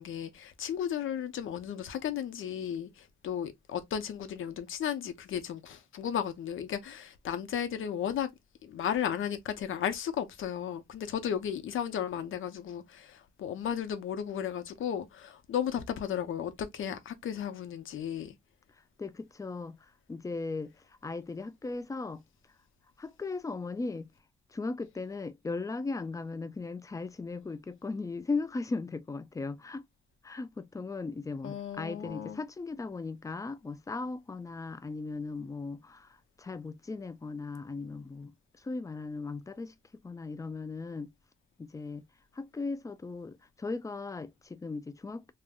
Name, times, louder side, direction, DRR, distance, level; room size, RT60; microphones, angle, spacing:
voice 1, 0.0-8.3 8.6-18.4 31.4-32.4, left 9 dB, 90° left, 0.6 m, -34 dB
voice 2, 19.0-20.7 21.0-22.2 23.0-24.1 24.5-29.9 30.2-38.3 38.6-41.1 41.6-42.0 42.3-45.3, left 3 dB, 15° left, 0.3 m, -37 dB
2.5 x 2.0 x 3.5 m
cardioid pair, 105°, 20 cm